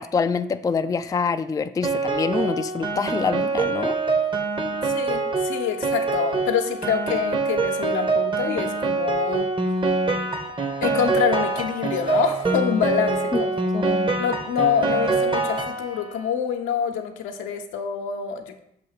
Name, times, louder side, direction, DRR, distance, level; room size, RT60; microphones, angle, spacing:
voice 1, 0.0-4.0 13.3-13.4 13.7-14.1, left 5 dB, 15° left, 9 dB, 0.3 m, -25 dB
Piano, 1.8-16.2, right 3 dB, 25° right, 0.8 m, -25 dB
voice 2, 4.9-9.5 10.8-13.7 14.2-18.6, left 8 dB, 75° left, 4 dB, 0.8 m, -26 dB
6.7 x 2.7 x 5.6 m, 0.77 s
hypercardioid pair, 50°, 21 cm